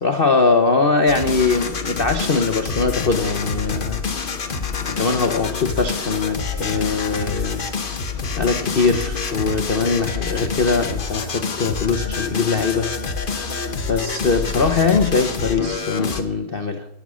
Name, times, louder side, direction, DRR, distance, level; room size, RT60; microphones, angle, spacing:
voice 1, 0.0-4.0 4.9-7.7 8.4-13.0 13.9-16.9, left 4 dB, 90° left, 0.5 m, -21 dB
sound 1, 1.1-16.2, left 5 dB, 35° left, 0.8 m, -27 dB
15.5 x 11.0 x 6.2 m
omnidirectional pair, 2.4 m